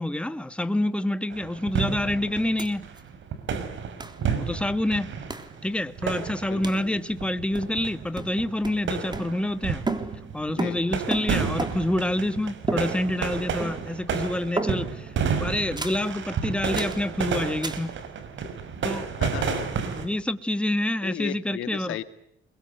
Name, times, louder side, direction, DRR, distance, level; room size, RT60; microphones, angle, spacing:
voice 1, 0.0-2.9 4.3-5.1 5.6-9.8 10.3-15.1 15.4-18.0 18.8-19.1 19.9-22.0, left 1 dB, 5° left, 1.8 m, -27 dB
sound 1, 1.3-20.1, right 6 dB, 70° right, 5.8 m, -31 dB
sound 2, 2.6-2.7 3.0-3.1 4.0-4.2 5.3-5.6 6.6-6.9 7.5-7.9 8.2-9.6 9.9-12.0 12.7-13.3 13.6-14.1 14.6-15.1 15.8-16.1 16.7-17.1 17.6-17.9, right 3 dB, 20° right, 3.4 m, -33 dB
voice 2, 4.2-4.6 6.5-7.0 10.5-10.8 19.2-20.0 21.0-22.0, left 12 dB, 85° left, 2.1 m, -36 dB
28.5 x 23.0 x 8.1 m
cardioid pair, 90°, 20 cm